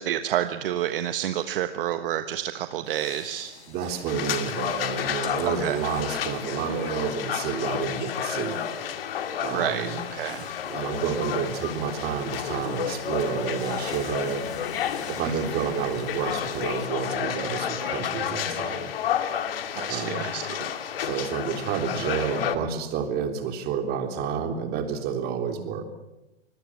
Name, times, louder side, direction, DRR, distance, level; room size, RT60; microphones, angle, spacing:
voice 1, 0.0-3.5 5.4-5.8 9.5-10.4 19.7-20.7, right 11 dB, 55° right, 9 dB, 1.3 m, -29 dB
sound 1, 2.8-16.9, left 4 dB, 75° left, 5.2 m, -45 dB
voice 2, 3.7-8.6 9.4-10.0 10.7-14.5 15.1-18.9 19.9-20.3 21.0-25.8, right 7 dB, 30° right, 6 dB, 3.4 m, -30 dB
sound 2, 4.1-22.6, left 9 dB, 60° left, 2.3 m, -31 dB
25.0 x 21.0 x 7.6 m, 0.94 s
hypercardioid pair, 125°, 33 cm